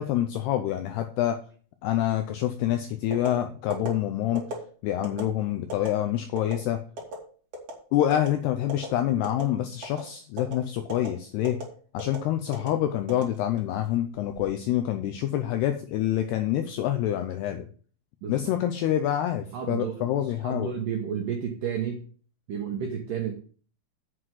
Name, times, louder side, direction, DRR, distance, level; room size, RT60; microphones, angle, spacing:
voice 1, 0.0-1.4 1.8-4.4 4.8-6.8 7.9-11.6 11.9-17.7 18.3-20.7, left 12 dB, 80° left, 7 dB, 2.3 m, -27 dB
sound 1, 3.1-3.3 3.7-3.9 4.4-4.6 5.0-5.2 5.7-5.9 6.4-6.5 7.0-7.2 7.5-7.8 8.1-8.3 8.7-8.9 9.2-9.5 9.8-10.0 10.4-10.5 10.9-11.1 11.4-11.6 12.0-12.2 12.5-12.7 13.1-13.7 14.2-14.5, equal, 35° right, 3.3 m, -34 dB
voice 2, 19.5-20.1 20.4-22.0 22.5-23.3, right 8 dB, 75° right, 3 dB, 1.9 m, -31 dB
7.9 x 6.4 x 7.7 m, 0.43 s
omnidirectional pair, 5.6 m